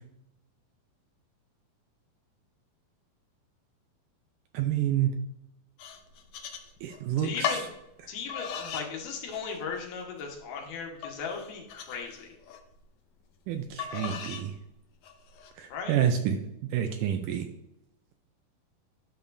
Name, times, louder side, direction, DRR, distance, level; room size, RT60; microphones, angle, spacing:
voice 1, 4.5-5.1 6.8-7.7 13.5-14.5 15.6-16.4 16.7-17.5, right 9 dB, 80° right, 6 dB, 1.9 m, -28 dB
sound 1, 5.8-7.0 7.4-7.7 8.3-8.9 9.3-9.8 10.3-10.4 11.0-12.6 13.8-14.5 15.0-15.5, left 7 dB, 70° left, 1.9 m, -36 dB
voice 2, 7.2-7.7 8.1-12.3 15.7-16.0, left 5 dB, 90° left, 0 dB, 3.3 m, -37 dB
11.0 x 6.8 x 2.7 m, 0.83 s
omnidirectional pair, 4.1 m